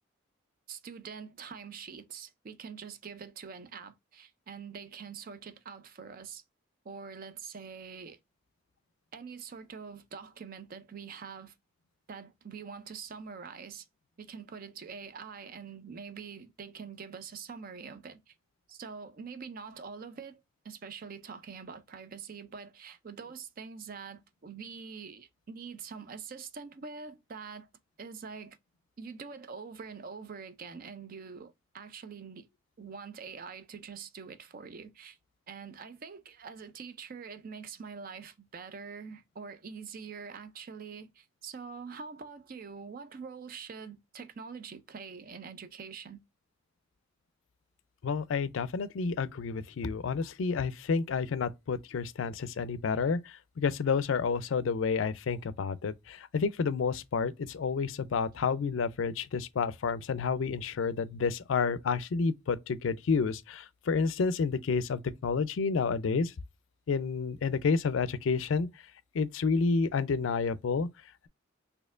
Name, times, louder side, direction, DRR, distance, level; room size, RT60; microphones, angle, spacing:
voice 1, 0.7-6.4 6.8-8.2 9.1-11.5 12.1-13.9 14.2-18.3 18.7-27.7 28.0-28.6 29.0-32.5 32.8-35.2 35.5-46.2, right 5 dB, 45° right, 0.4 m, -45 dB
voice 2, 48.0-66.3 66.9-68.7 69.1-70.9, left 5 dB, 70° left, 0.4 m, -30 dB
4.3 x 2.7 x 2.4 m
head